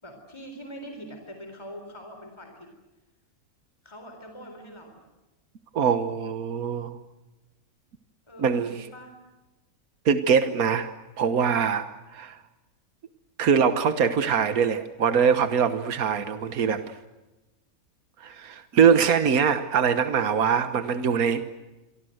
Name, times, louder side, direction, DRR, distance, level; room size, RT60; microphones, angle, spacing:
voice 1, 0.0-2.7 3.8-5.0 8.3-9.2, equal, 20° left, 5 dB, 4.1 m, -43 dB
voice 2, 5.7-7.0 8.4-8.9 10.0-10.9 11.2-11.9 12.1-12.4 13.4-16.8 18.2-21.4, right 6 dB, 80° right, 10 dB, 1.7 m, -23 dB
27.5 x 24.5 x 7.9 m, 1.1 s
omnidirectional pair, 1.5 m